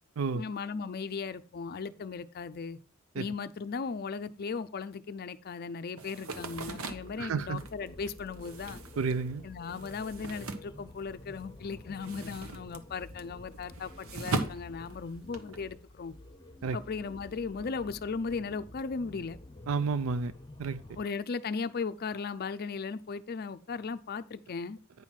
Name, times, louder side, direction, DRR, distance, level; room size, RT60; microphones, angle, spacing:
voice 1, 0.3-2.8 3.1-8.8 9.4-16.1 16.7-19.4 21.0-24.8, left 5 dB, 45° left, 0.5 m, -37 dB
sound 1, 6.0-11.4 11.7-15.6, right 3 dB, 85° right, 1.1 m, -39 dB
sound 2, 6.3-21.1, left 1 dB, 20° left, 0.9 m, -50 dB
voice 2, 7.2-7.6 9.0-9.4 16.6-16.8 19.7-20.3 20.6-20.8, right 4 dB, 70° right, 0.4 m, -30 dB
9.5 x 5.8 x 4.5 m
head